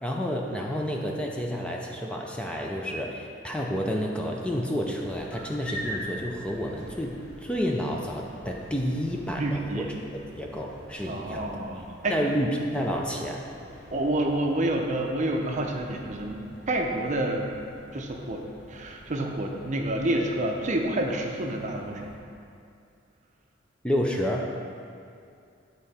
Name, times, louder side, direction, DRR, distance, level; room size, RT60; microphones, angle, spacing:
voice 1, 0.0-9.9 10.3-11.6 12.1-13.5 23.8-24.5, equal, 5° left, -1 dB, 0.4 m, -30 dB
sound 1, 4.8-22.2, equal, 60° left, 1.4 m, -46 dB
voice 2, 9.4-9.9 11.1-12.2 13.9-17.5 17.9-18.5 18.7-22.1, right 1 dB, 40° right, 2 dB, 0.6 m, -28 dB
9.2 x 3.8 x 4.2 m, 2.4 s
head